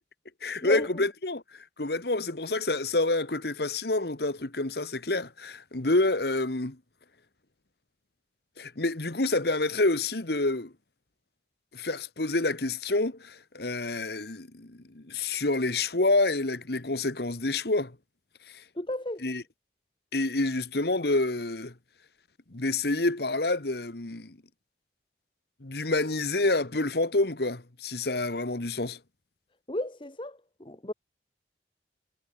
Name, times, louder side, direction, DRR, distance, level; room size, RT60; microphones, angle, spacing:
voice 1, 0.4-1.4 1.8-6.8 8.6-10.7 11.7-17.9 19.2-19.4 20.1-21.7 22.5-24.4 25.6-29.0, left 2 dB, 60° left, 1.5 m, -28 dB
voice 2, 18.8-19.2 29.7-30.9, left 1 dB, 25° left, 1.1 m, -34 dB
head